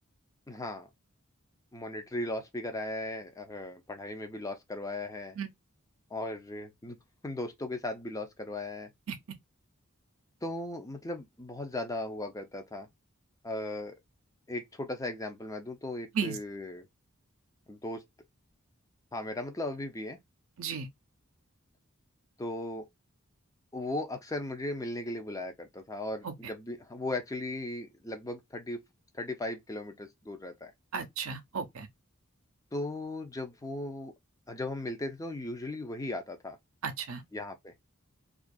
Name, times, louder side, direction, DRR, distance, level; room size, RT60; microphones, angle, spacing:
voice 1, 0.5-0.9 1.7-5.4 6.1-7.0 7.2-8.9 10.4-12.9 13.4-13.9 14.5-16.9 17.7-18.0 19.1-20.2 22.4-22.8 23.7-28.8 29.2-30.7 32.7-34.1 34.5-36.6 37.3-37.7, left 1 dB, 15° left, 0.5 m, -37 dB
voice 2, 30.9-31.9 36.8-37.2, right 6 dB, 75° right, 0.6 m, -34 dB
2.4 x 2.3 x 2.5 m
head